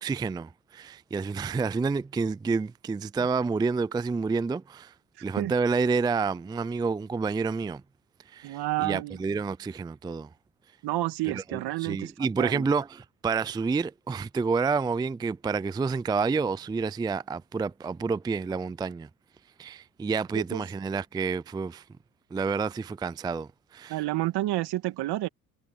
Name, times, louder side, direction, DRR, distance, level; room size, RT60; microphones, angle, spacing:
voice 1, 0.0-4.9 5.2-7.8 8.3-10.3 11.3-19.1 19.6-21.8 22.3-24.0, right 4 dB, 10° right, 0.4 m, -29 dB
voice 2, 8.4-9.2 10.8-12.1 12.4-12.7 20.3-20.6 23.9-25.3, right 17 dB, 65° right, 2.0 m, -29 dB
hypercardioid pair, 65°, 43 cm